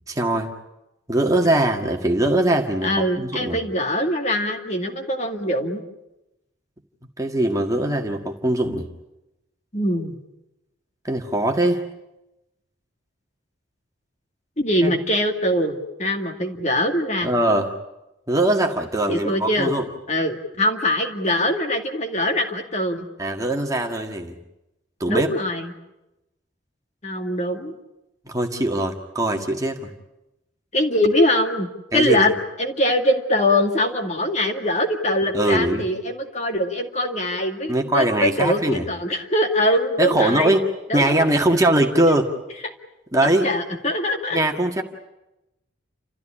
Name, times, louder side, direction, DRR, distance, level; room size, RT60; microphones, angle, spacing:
voice 1, 0.1-0.5 1.1-2.9 3.2-3.6 7.2-8.9 11.0-11.8 14.8-14.9 17.2-17.7 18.3-19.8 23.2-24.4 25.0-25.3 28.3-29.9 31.9-32.2 35.3-35.8 37.7-38.8 40.0-40.6 40.9-42.3 43.1-43.5 44.3-44.8, right 1 dB, 15° right, 3 dB, 1.8 m, -21 dB
voice 2, 2.8-5.8 9.7-10.2 14.6-17.3 19.1-19.7 20.1-23.1 25.1-25.7 27.0-27.8 30.7-32.3 32.6-40.6 40.9-41.2 42.0-42.2 43.4-44.4, left 1 dB, 35° left, 4 dB, 2.1 m, -22 dB
30.0 x 14.5 x 9.9 m, 0.94 s
head